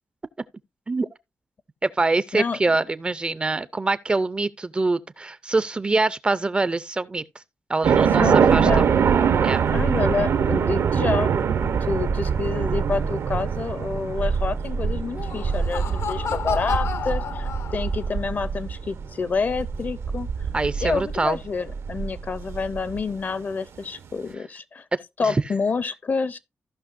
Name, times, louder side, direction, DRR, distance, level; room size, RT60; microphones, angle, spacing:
voice 1, 1.8-7.2 7.7-8.9 9.4-9.6 20.5-21.4 24.9-25.0 25.2-25.4, right 3 dB, 20° right, 0.4 m, -24 dB
sound 1, 7.8-23.0, right 6 dB, 80° right, 0.8 m, -23 dB
voice 2, 8.2-8.9 9.7-11.3 11.6-20.3 20.8-24.8 25.2-26.4, left 4 dB, 40° left, 0.5 m, -28 dB
Laughter, 15.0-18.2, left 7 dB, 85° left, 0.9 m, -31 dB
15.5 x 5.8 x 2.5 m
wide cardioid pair, 160°, 5 cm